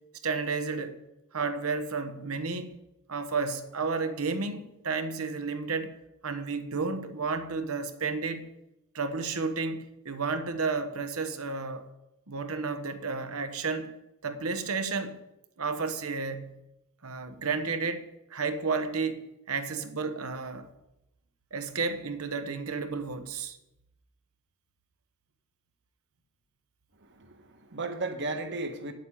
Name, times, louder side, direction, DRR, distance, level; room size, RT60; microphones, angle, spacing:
voice 1, 0.2-1.0 1.3-2.8 3.1-5.9 6.2-8.5 8.9-11.8 12.3-13.9 14.2-15.2 15.6-16.6 17.0-20.7 21.5-23.6, right 4 dB, 80° right, 1.2 m, -32 dB
voice 2, 27.0-28.9, right 2 dB, 55° right, 1.5 m, -35 dB
9.0 x 8.0 x 8.6 m
head